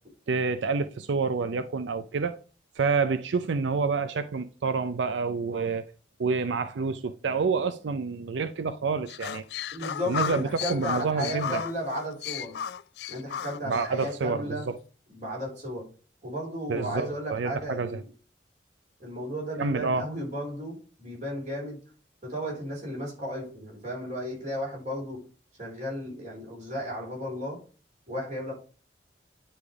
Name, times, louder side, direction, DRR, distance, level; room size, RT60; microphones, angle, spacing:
voice 1, 0.3-2.4 2.8-5.9 6.2-9.4 10.1-11.6 13.7-14.7 16.7-18.0 19.6-20.1, right 4 dB, 90° right, 0.5 m, -28 dB
sound 1, 9.1-14.1, left 8 dB, 65° left, 0.3 m, -34 dB
voice 2, 9.7-12.6 13.1-14.7 15.1-15.9 16.2-18.0 19.0-21.8 22.2-25.2 25.6-27.6 28.1-28.5, equal, 40° right, 4.1 m, -34 dB
9.9 x 3.4 x 4.8 m
head